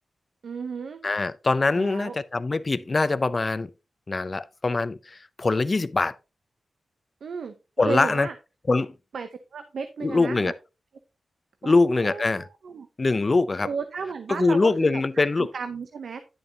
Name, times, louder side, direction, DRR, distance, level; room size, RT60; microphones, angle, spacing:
voice 1, 0.4-1.0 1.8-2.2 7.2-8.3 9.1-10.5 11.6-12.9 13.6-15.2 15.5-16.2, right 5 dB, 85° right, 0.7 m, -34 dB
voice 2, 1.0-3.7 4.1-6.2 7.8-8.3 8.7-8.9 10.0-10.5 11.6-12.5 13.0-13.7 14.3-15.5, left 3 dB, 35° left, 0.5 m, -23 dB
10.5 x 6.9 x 2.8 m
wide cardioid pair, 85°, 0 cm